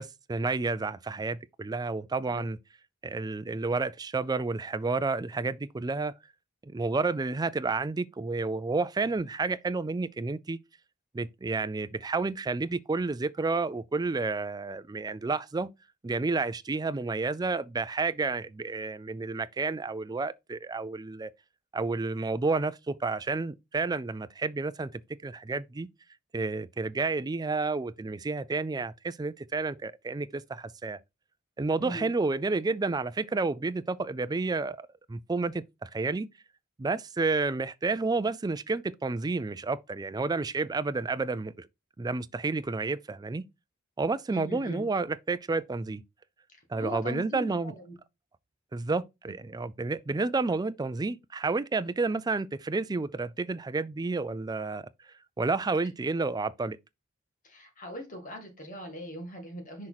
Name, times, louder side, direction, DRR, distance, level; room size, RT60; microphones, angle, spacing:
voice 1, 0.0-2.6 3.0-6.1 6.6-10.6 11.1-15.7 16.0-21.3 21.7-24.9 25.2-25.9 26.3-31.0 31.6-36.3 36.8-41.7 42.0-43.4 44.0-46.0 46.7-47.7 48.7-54.9 55.4-56.8, right 3 dB, 20° right, 0.3 m, -30 dB
voice 2, 44.3-44.8 46.8-47.9 57.4-59.9, equal, 40° left, 2.0 m, -40 dB
6.3 x 4.3 x 4.0 m
head